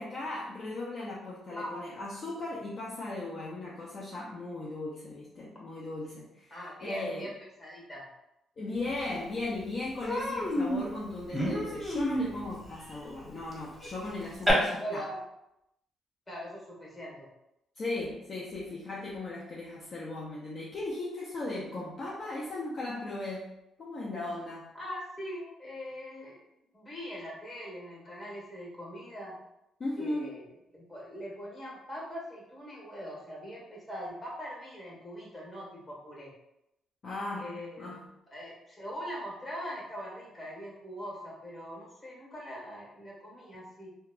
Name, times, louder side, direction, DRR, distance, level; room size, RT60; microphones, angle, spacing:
voice 1, 0.0-7.2 8.6-15.0 17.8-23.5 23.8-24.7 29.8-30.4 37.0-38.0, left 2 dB, 50° left, -5 dB, 0.5 m, -37 dB
voice 2, 6.5-7.3 7.6-8.1 14.8-15.2 16.3-17.3 24.7-26.4 26.7-29.4 30.0-30.4 30.7-36.3 37.4-38.1 38.3-43.9, equal, 30° left, -4 dB, 1.3 m, -41 dB
Human voice, 9.0-9.1 9.4-9.6 10.0-14.5, equal, 5° left, 1.0 m, -32 dB
2.9 x 2.2 x 2.4 m, 0.85 s
cardioid pair, 90°, 0 cm